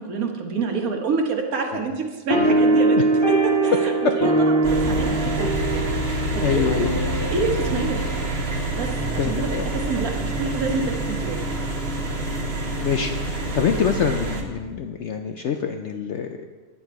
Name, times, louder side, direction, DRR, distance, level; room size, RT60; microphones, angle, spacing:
voice 1, 0.0-3.0 3.6-5.9 6.3-6.7 7.1-8.0 8.7-11.4, right 4 dB, 65° right, 3 dB, 1.6 m, -28 dB
sound 1, 2.3-9.2, right 2 dB, 20° left, 1.1 m, -22 dB
sound 2, 4.6-14.4, right 1 dB, 40° right, 1.5 m, -27 dB
voice 2, 6.4-7.2 9.1-9.7 12.8-16.5, left 7 dB, 65° left, 5 dB, 0.7 m, -25 dB
10.5 x 8.5 x 4.7 m, 1.4 s
omnidirectional pair, 1.7 m